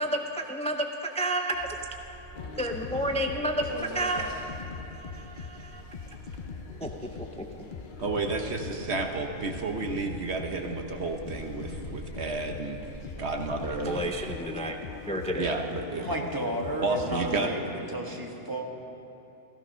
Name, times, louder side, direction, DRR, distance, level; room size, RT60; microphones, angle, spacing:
voice 1, 0.0-1.8 2.6-3.7 3.9-6.1 6.8-7.5 13.8-14.8 15.1-15.5, right 1 dB, 10° left, 4 dB, 0.3 m, -31 dB
sound 1, 1.5-14.4, right 2 dB, 75° left, 4.4 m, -48 dB
sound 2, 2.3-17.5, left 5 dB, 50° left, 0.7 m, -41 dB
voice 2, 3.7-4.3 16.0-17.6 17.9-18.6, right 1 dB, 15° right, 0 dB, 1.5 m, -33 dB
voice 3, 8.0-12.8 13.2-14.1 15.4-16.3 16.8-17.5, right 3 dB, 55° right, 4 dB, 1.2 m, -31 dB
15.5 x 15.0 x 5.6 m, 2.9 s
omnidirectional pair, 1.4 m